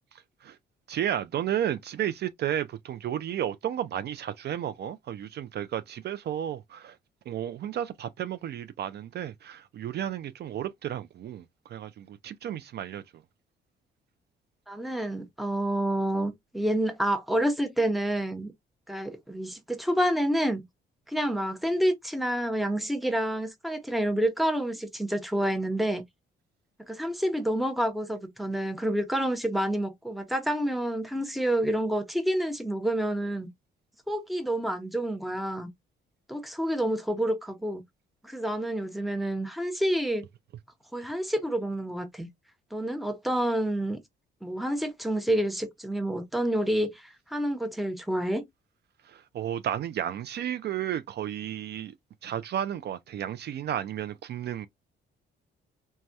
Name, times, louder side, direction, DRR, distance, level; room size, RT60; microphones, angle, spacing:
voice 1, 0.1-0.6 0.9-7.0 7.3-13.0 49.0-51.9 52.2-54.7, right 10 dB, 55° right, 0.4 m, -33 dB
voice 2, 14.7-18.5 18.9-20.6 21.1-26.0 26.9-33.5 34.1-35.7 36.3-37.8 38.2-40.3 40.9-42.3 42.7-44.0 44.4-48.4, right 1 dB, ahead, 0.7 m, -28 dB
3.3 x 2.2 x 2.6 m
cardioid pair, 90°, 20 cm